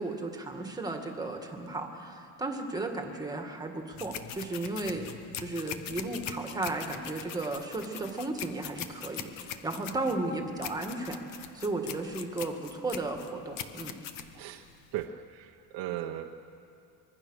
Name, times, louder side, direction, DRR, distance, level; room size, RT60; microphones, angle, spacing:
voice 1, 0.0-11.2 11.5-14.0, right 2 dB, 10° right, 3 dB, 2.0 m, -34 dB
sound 1, 4.0-15.1, left 9 dB, 55° left, 1.3 m, -42 dB
voice 2, 14.9-16.5, right 12 dB, 65° right, 3 dB, 1.0 m, -37 dB
25.0 x 22.0 x 6.5 m, 2.5 s
cardioid pair, 155°, 40 cm